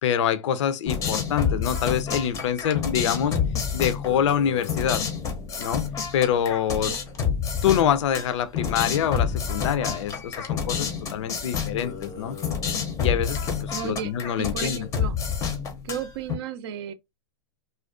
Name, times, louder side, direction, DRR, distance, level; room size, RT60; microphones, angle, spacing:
voice 1, 0.0-3.4 3.7-5.0 5.6-5.9 6.1-6.9 7.6-12.4 13.0-14.9, left 9 dB, 70° left, 0.4 m, -25 dB
sound 1, 0.9-16.3, left 6 dB, 20° left, 0.5 m, -29 dB
voice 2, 13.7-14.1 14.4-15.2 15.8-16.9, right 8 dB, 55° right, 0.4 m, -33 dB
2.4 x 2.1 x 2.3 m
hypercardioid pair, 125°, 16 cm